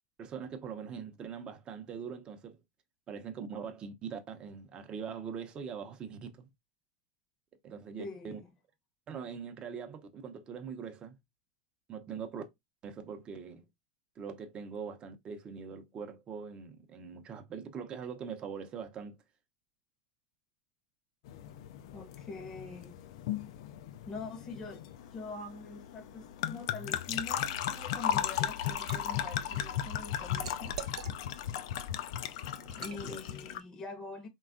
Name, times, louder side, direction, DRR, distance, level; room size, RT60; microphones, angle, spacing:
voice 1, 0.2-2.6 3.1-6.5 7.6-8.4 9.1-11.2 11.9-12.4 12.8-13.6 14.2-19.2 32.6-33.2, right 6 dB, 30° right, 0.6 m, -42 dB
voice 2, 8.0-8.5 21.9-22.9 24.1-24.8 25.1-30.7 32.8-34.3, left 3 dB, 25° left, 0.7 m, -44 dB
sound 1, 21.3-33.6, left 11 dB, 65° left, 0.3 m, -36 dB
Liquid, 28.2-29.0 29.4-31.5 31.9-32.1 32.7-33.0, right 8 dB, 85° right, 0.3 m, -45 dB
3.3 x 2.3 x 2.4 m
hypercardioid pair, 115°, 3 cm